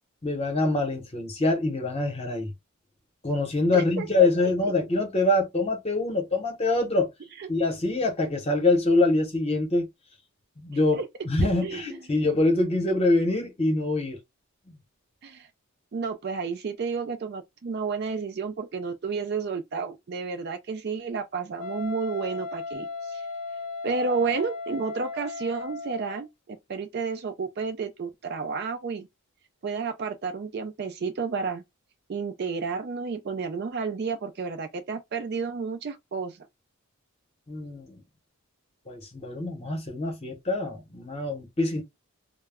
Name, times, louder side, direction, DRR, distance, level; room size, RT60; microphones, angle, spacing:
voice 1, 0.2-2.5 3.2-7.1 7.5-9.9 10.6-11.0 11.2-14.2 37.5-38.0 38.9-41.8, left 2 dB, 25° left, 0.8 m, -25 dB
voice 2, 3.7-4.3 7.4-7.5 10.9-11.1 11.6-12.0 15.2-15.5 15.9-23.2 23.8-29.1 29.6-31.6 32.1-36.5, right 5 dB, 45° right, 0.3 m, -31 dB
Wind instrument woodwind instrument, 21.6-26.3, left 4 dB, 80° left, 0.3 m, -36 dB
2.2 x 2.0 x 3.4 m
head